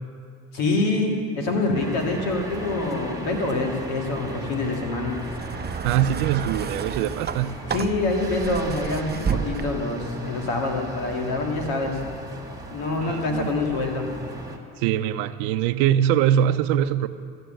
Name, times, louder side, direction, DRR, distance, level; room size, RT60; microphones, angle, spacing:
voice 1, 0.5-5.2 7.7-12.0 12.7-14.1, left 2 dB, 85° left, 1 dB, 2.1 m, -26 dB
sound 1, 1.7-14.6, right 2 dB, 10° right, 1.9 m, -37 dB
sound 2, 5.2-10.0 11.0-11.1, right 6 dB, 25° right, 0.6 m, -31 dB
voice 2, 5.8-7.6 13.0-13.5 14.8-17.1, right 10 dB, 80° right, 13 dB, 0.6 m, -22 dB
14.0 x 6.7 x 9.0 m, 2.4 s
supercardioid pair, 70°, 37 cm